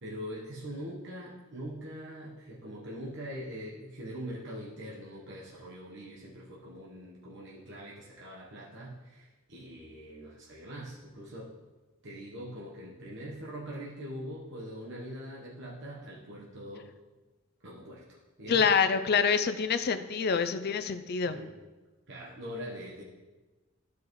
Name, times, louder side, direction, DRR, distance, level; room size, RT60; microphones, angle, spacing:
voice 1, 0.0-11.5 12.0-16.9 17.6-18.7 21.3-21.5 22.1-23.0, equal, 60° right, -5 dB, 1.1 m, -43 dB
voice 2, 18.5-21.4, left 6 dB, 50° left, 11 dB, 0.4 m, -26 dB
12.0 x 4.8 x 3.1 m, 1.2 s
head